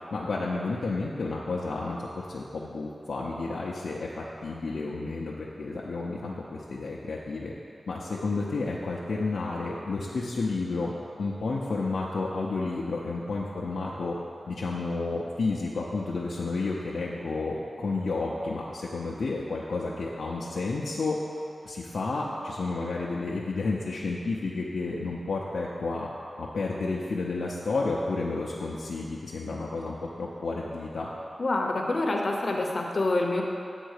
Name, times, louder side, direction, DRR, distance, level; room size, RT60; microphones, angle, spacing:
voice 1, 0.0-7.5 7.9-10.9 11.2-14.2 14.5-21.2 21.6-26.1 26.4-31.1, left 3 dB, 75° left, -5 dB, 0.6 m, -31 dB
voice 2, 31.4-33.4, left 2 dB, 45° left, 1 dB, 0.8 m, -26 dB
8.1 x 3.8 x 6.5 m, 2.6 s
wide cardioid pair, 110°, 0 cm